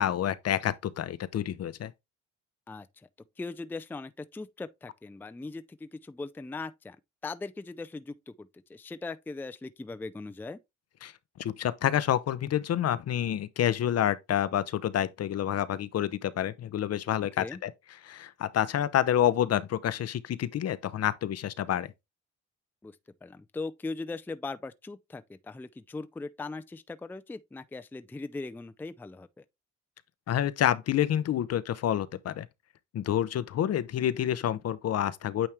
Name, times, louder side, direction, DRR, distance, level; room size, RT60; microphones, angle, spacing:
voice 1, 0.0-1.9 11.0-11.1 11.4-17.7 18.0-21.9 30.3-32.5 32.9-35.5, left 11 dB, 55° left, 0.6 m, -28 dB
voice 2, 2.7-3.1 3.4-7.0 7.2-10.6 17.4-17.6 22.8-29.4, left 3 dB, 5° left, 0.4 m, -39 dB
8.8 x 3.2 x 3.4 m
cardioid pair, 90°, 30 cm